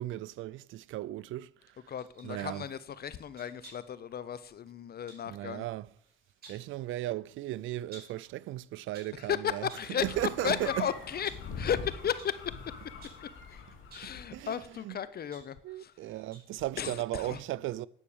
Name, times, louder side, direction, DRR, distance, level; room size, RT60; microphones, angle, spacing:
voice 1, 0.0-1.9 2.2-2.7 5.3-5.9 6.5-10.9 14.0-15.0 15.6-17.9, right 15 dB, 80° right, 0.5 m, -36 dB
voice 2, 1.9-5.6 9.2-10.0 10.4-11.3 11.6-12.6 13.5-13.6 13.9-15.9 16.8-17.4, left 8 dB, 50° left, 0.7 m, -34 dB
sound 1, 2.0-2.3 3.3-4.0 5.1-5.3 6.2-6.7 7.9-8.2 8.7-9.2 9.7-10.0 10.5-10.6 11.1-11.6 12.2-12.4 13.0-13.3 13.8-14.2 14.9-16.0 16.3-16.6 16.9-17.0, right 2 dB, 50° right, 5.0 m, -53 dB
sound 2, 10.0-14.5, left 4 dB, 80° left, 2.3 m, -43 dB
10.0 x 6.4 x 8.7 m
cardioid pair, 90°, 20 cm